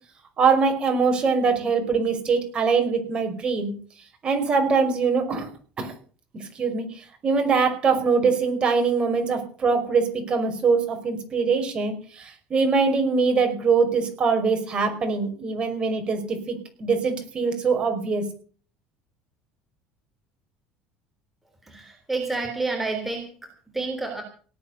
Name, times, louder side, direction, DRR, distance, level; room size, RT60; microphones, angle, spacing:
voice 1, 0.4-3.7 4.2-5.5 5.8-5.9 6.4-6.8 7.2-18.3, right 5 dB, 30° right, 5 dB, 5.4 m, -23 dB
voice 2, 21.7-24.2, right 3 dB, 5° right, 3 dB, 3.5 m, -29 dB
18.5 x 8.7 x 7.0 m, 0.42 s
cardioid pair, 130°, 3 cm